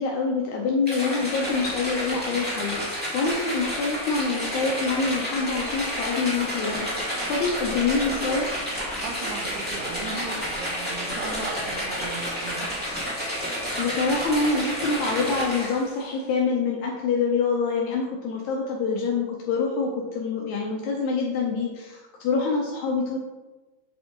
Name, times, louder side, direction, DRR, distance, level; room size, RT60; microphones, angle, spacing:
voice 1, 0.0-2.8 3.1-6.9 7.3-8.6 13.8-23.2, left 4 dB, 85° left, -1 dB, 1.6 m, -26 dB
sound 1, 0.9-16.0, equal, 5° right, 1.2 m, -30 dB
voice 2, 9.0-12.8, right 4 dB, 75° right, 4 dB, 1.8 m, -37 dB
8.1 x 4.3 x 4.6 m, 1.2 s
omnidirectional pair, 4.4 m